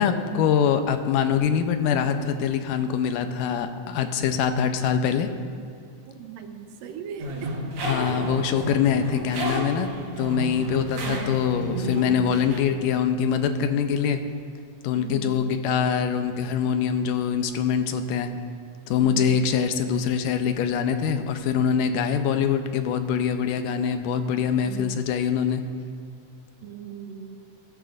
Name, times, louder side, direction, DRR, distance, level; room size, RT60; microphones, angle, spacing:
voice 1, 0.0-5.3 7.8-9.9 10.2-14.2 14.8-18.3 18.9-25.6, left 7 dB, 90° left, 8 dB, 2.3 m, -24 dB
voice 2, 6.0-7.6 14.9-15.5 19.0-19.5 24.6-25.0 26.6-27.4, right 7 dB, 90° right, 6 dB, 2.5 m, -39 dB
sound 1, 7.2-12.6, right 1 dB, 50° right, 2.0 m, -31 dB
22.5 x 11.0 x 2.6 m, 2.4 s
omnidirectional pair, 3.8 m